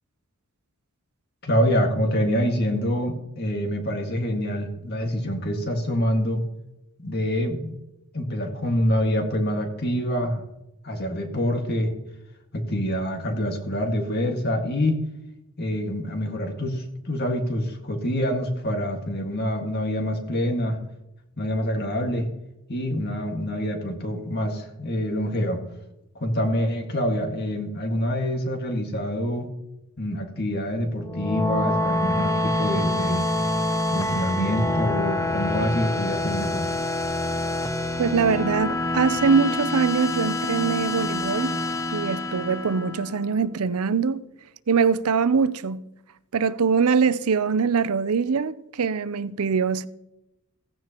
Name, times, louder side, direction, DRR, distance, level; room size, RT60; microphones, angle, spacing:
voice 1, 1.4-6.4 7.0-7.8 8.1-10.4 10.8-11.9 12.5-15.0 15.6-20.8 21.4-22.3 22.7-25.6 26.2-29.5 30.0-33.3 33.9-36.7, equal, 45° left, 1.8 m, -26 dB
sound 1, 31.0-43.3, left 1 dB, 15° left, 0.5 m, -26 dB
voice 2, 38.0-41.6 41.9-44.2 44.7-45.8 46.3-49.9, right 5 dB, 80° right, 0.6 m, -23 dB
16.0 x 15.5 x 3.0 m
head